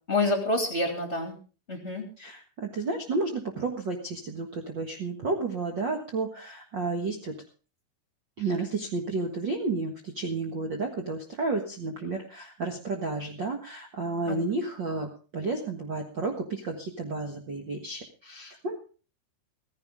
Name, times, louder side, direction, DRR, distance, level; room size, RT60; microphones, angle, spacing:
voice 1, 0.1-1.3 1.7-2.0 14.3-14.4, left 2 dB, 20° left, 3 dB, 2.4 m, -27 dB
voice 2, 2.2-7.3 8.4-18.8, right 3 dB, 70° right, 3 dB, 1.0 m, -32 dB
16.5 x 15.0 x 3.6 m, 0.36 s
omnidirectional pair, 4.6 m